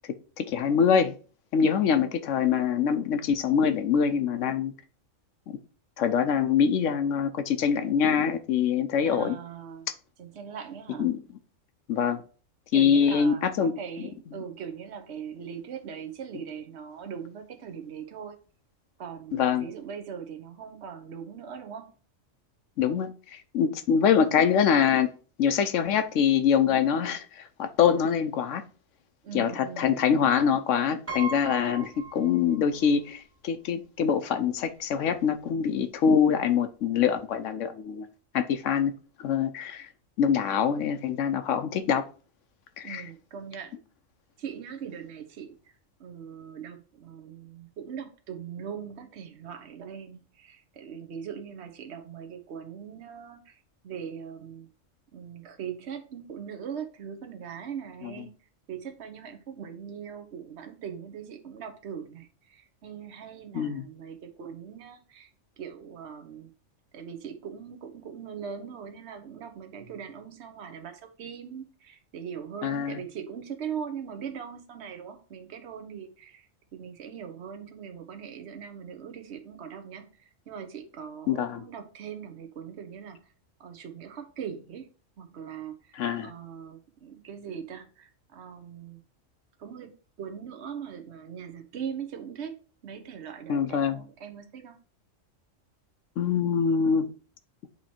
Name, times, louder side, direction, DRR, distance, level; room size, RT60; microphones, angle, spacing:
voice 1, 0.4-1.2 1.5-4.7 5.5-5.6 6.0-9.4 11.0-11.2 11.9-12.2 12.7-13.7 19.3-19.7 22.8-25.1 25.4-28.6 29.3-38.1 38.3-38.9 39.2-39.9 40.2-42.0 42.8-43.0 58.0-58.1 63.5-63.8 72.6-73.0 81.3-81.6 86.0-86.3 93.5-94.0 96.2-97.1, left 7 dB, 75° left, 1.0 m, -24 dB
voice 2, 1.8-2.1 9.0-9.9 10.2-11.1 12.7-18.4 19.0-21.9 29.2-30.1 42.8-43.8 44.4-54.7 55.1-58.3 58.7-65.3 65.6-66.5 66.9-83.3 83.6-84.9 85.2-89.0 89.6-92.5 92.8-94.8, right 7 dB, 60° right, 1.1 m, -40 dB
Piano, 31.1-32.9 33.2-33.3 34.5-34.6 34.9-35.1, right 4 dB, 10° right, 1.0 m, -38 dB
8.4 x 3.0 x 4.3 m
omnidirectional pair, 1.3 m